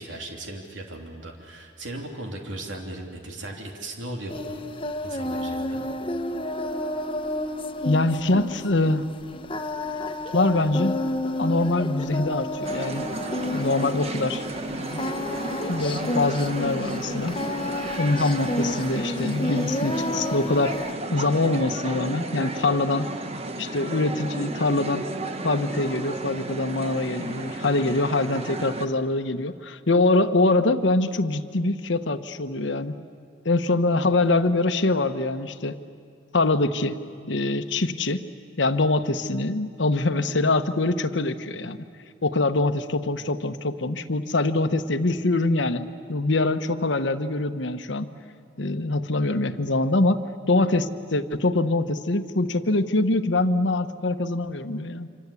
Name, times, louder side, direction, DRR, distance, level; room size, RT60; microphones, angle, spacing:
voice 1, 0.0-4.6 5.0-5.8, right 1 dB, 90° right, 2 dB, 2.9 m, -37 dB
Singing, 4.3-20.9, left 1 dB, 30° left, 1.1 m, -31 dB
voice 2, 7.8-9.1 10.3-11.0 11.4-13.1 13.5-15.0 15.7-17.4 18.0-20.8 21.1-23.1 23.6-25.0 25.4-33.0 33.4-35.8 36.3-37.0 37.3-38.2 38.6-41.8 42.2-48.1 48.6-50.2 50.5-55.1, left 2 dB, 75° left, 10 dB, 1.1 m, -24 dB
sound 1, 12.6-28.9, right 2 dB, 35° right, 1.2 m, -33 dB
26.5 x 26.0 x 8.4 m, 2.2 s
head